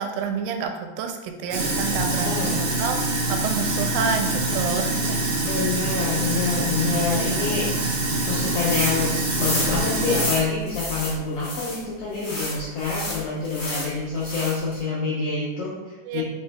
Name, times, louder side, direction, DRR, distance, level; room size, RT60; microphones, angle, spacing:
voice 1, 0.0-3.0 3.3-5.2 16.1-16.2, right 5 dB, 85° right, 5 dB, 2.1 m, -28 dB
Sink (filling or washing), 1.5-10.2, right 2 dB, 65° right, 1.4 m, -25 dB
voice 2, 2.2-2.6 5.4-7.7 8.2-16.2, left 4 dB, 85° left, -6 dB, 1.3 m, -27 dB
sound 1, 8.5-8.9 9.2-11.8 12.2-13.9 14.2-14.7, left 1 dB, 65° left, 0.8 m, -30 dB
4.8 x 2.8 x 3.4 m, 1.2 s
omnidirectional pair, 3.8 m